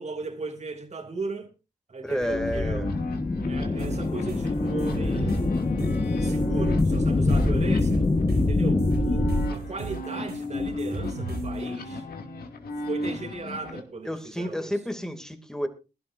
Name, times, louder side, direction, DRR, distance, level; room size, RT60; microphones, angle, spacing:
voice 1, 0.0-1.5 1.9-2.9 3.4-5.5 6.1-8.0 8.4-12.1 12.9-14.7, right 3 dB, 45° right, 2.8 m, -37 dB
voice 2, 2.0-3.0 14.0-15.7, equal, 5° left, 2.6 m, -30 dB
sound 1, 2.1-13.8, left 1 dB, 70° left, 2.6 m, -34 dB
sound 2, 2.2-9.5, left 3 dB, 30° left, 1.5 m, -25 dB
sound 3, 3.8-11.6, right 3 dB, 85° right, 7.8 m, -37 dB
22.0 x 12.0 x 2.7 m
cardioid pair, 70°, 16 cm